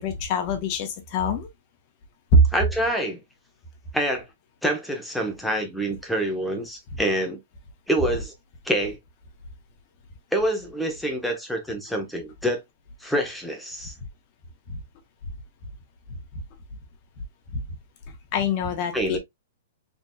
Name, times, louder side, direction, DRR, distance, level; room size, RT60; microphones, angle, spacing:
voice 1, 0.0-1.5 2.3-2.4 14.7-14.8 17.5-17.6 18.3-19.2, equal, 35° left, 1.1 m, -23 dB
voice 2, 2.5-3.2 3.9-4.3 4.6-7.4 7.9-8.3 8.6-9.0 10.3-12.6 13.0-13.9 18.9-19.2, right 1 dB, ahead, 1.1 m, -26 dB
4.2 x 3.6 x 2.3 m
hypercardioid pair, 155°, 0 cm